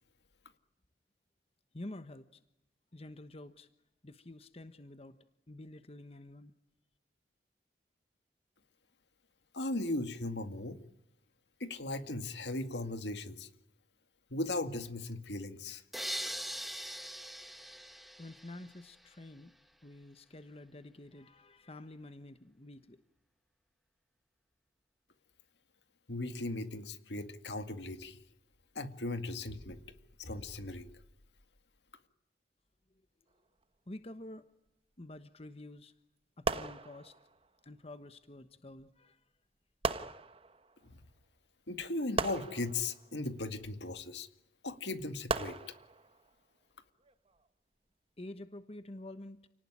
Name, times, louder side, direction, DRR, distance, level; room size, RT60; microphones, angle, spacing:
voice 1, 1.7-2.4 2.9-3.7 4.0-5.2 5.5-6.5 18.2-19.5 19.8-23.0 33.9-34.5 35.0-35.9 36.4-37.2 37.6-39.2 48.2-49.4, left 1 dB, 35° left, 11 dB, 1.1 m, -48 dB
voice 2, 9.5-10.8 11.6-13.5 14.3-15.8 26.1-28.2 28.8-29.8 30.2-30.9 40.8-41.0 41.7-44.3 44.6-45.6, left 2 dB, 75° left, 9 dB, 2.1 m, -37 dB
sound 1, 15.9-18.9, equal, ahead, 1.3 m, -41 dB
sound 2, 36.4-37.5 38.8-38.9 39.8-40.8 42.2-43.5 45.3-46.3 47.0-47.3, right 3 dB, 35° right, 1.2 m, -37 dB
29.5 x 19.0 x 10.0 m, 0.84 s
head